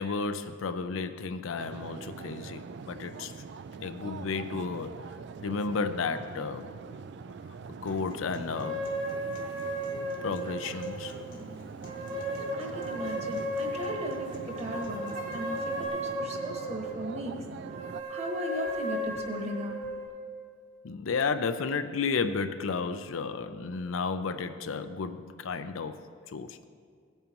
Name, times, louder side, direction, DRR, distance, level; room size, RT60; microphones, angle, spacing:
voice 1, 0.0-3.3 3.8-5.0 5.4-6.7 7.8-8.9 10.2-11.1 20.8-26.7, left 4 dB, 80° left, 10 dB, 0.5 m, -32 dB
sound 1, 1.6-18.0, right 5 dB, 60° right, 0.3 m, -43 dB
Acoustic guitar, 7.9-15.9, left 1 dB, 65° left, 1.4 m, -49 dB
sound 2, 8.5-11.3 11.8-17.0 17.6-20.1, equal, 80° right, 3.2 m, -35 dB
voice 2, 12.6-17.3 18.1-19.7, equal, 35° right, 1 dB, 1.3 m, -37 dB
16.5 x 8.8 x 3.0 m, 2.1 s
head